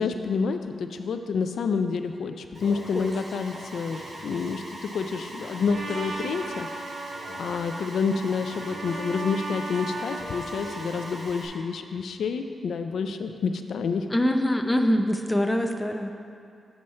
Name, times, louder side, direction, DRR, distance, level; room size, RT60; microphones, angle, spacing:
voice 1, 0.0-6.9 7.1-14.1, left 5 dB, 80° left, 7 dB, 0.3 m, -29 dB
Alarm, 2.5-11.5, right 1 dB, 50° right, 1.9 m, -41 dB
Trumpet, 5.7-11.1, right 2 dB, 70° right, 0.8 m, -37 dB
voice 2, 14.1-16.1, equal, 10° left, 4 dB, 0.4 m, -24 dB
7.0 x 4.3 x 6.4 m, 2.3 s
wide cardioid pair, 140°, 0 cm